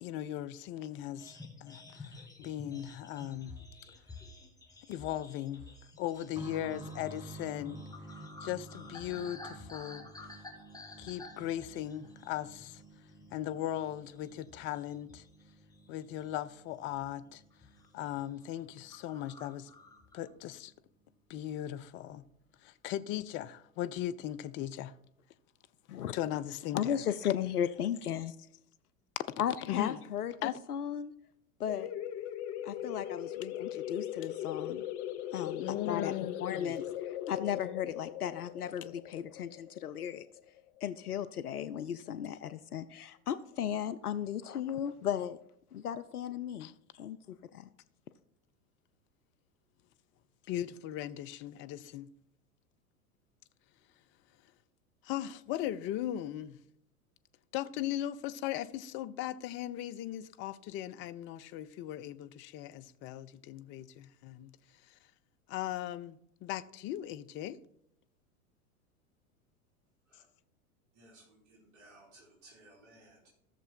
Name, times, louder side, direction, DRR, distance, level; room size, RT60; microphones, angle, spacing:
voice 1, 0.0-3.6 4.9-5.7 6.0-7.8 8.4-10.3 11.0-12.8 13.3-15.2 15.9-17.4 17.9-19.7 20.1-20.7 21.3-22.2 22.6-24.9 26.1-27.0 29.7-30.0 30.4-30.5 35.6-36.7 46.6-46.7 50.5-52.1 55.0-56.6 57.5-64.5 65.5-67.6, left 12 dB, 30° left, 0.5 m, -38 dB
sound 1, 1.2-12.9 13.2-13.5 13.9-15.4 15.7-16.5 17.0-17.2 17.5-17.9 18.2-18.3 18.6-18.7 18.9-20.3, left 3 dB, 10° left, 1.7 m, -51 dB
sound 2, 6.3-20.8 21.0-21.1 22.1-22.2, right 1 dB, 10° right, 1.0 m, -52 dB
voice 2, 26.7-28.3 29.4-31.1 31.6-31.9 32.6-34.8 35.3-40.3 40.8-45.4 45.7-47.7, left 9 dB, 80° left, 0.6 m, -36 dB
sound 3, 31.7-41.0, left 11 dB, 50° left, 0.9 m, -39 dB
voice 3, 70.9-73.3, right 2 dB, 40° right, 4.5 m, -59 dB
14.5 x 6.7 x 4.4 m
figure-of-eight pair, 90°, 44 cm